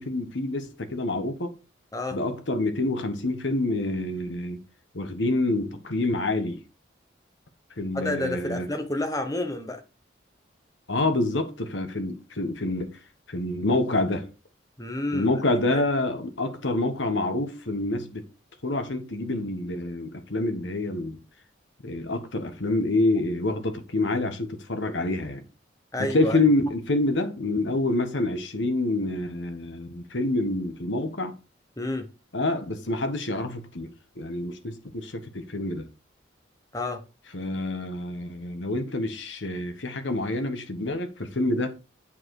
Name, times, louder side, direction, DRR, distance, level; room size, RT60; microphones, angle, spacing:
voice 1, 0.0-1.5 2.1-4.6 4.9-6.6 7.8-8.7 10.9-13.0 13.3-14.3 15.1-18.3 18.6-21.2 21.8-25.4 26.0-31.3 32.3-33.9 34.2-35.9 37.3-41.7, left 2 dB, 75° left, 1.3 m, -27 dB
voice 2, 7.9-9.8 14.8-15.3 15.7-15.8 25.9-26.5 31.8-32.1 36.7-37.0, left 1 dB, 20° left, 1.1 m, -29 dB
8.6 x 4.8 x 4.8 m
head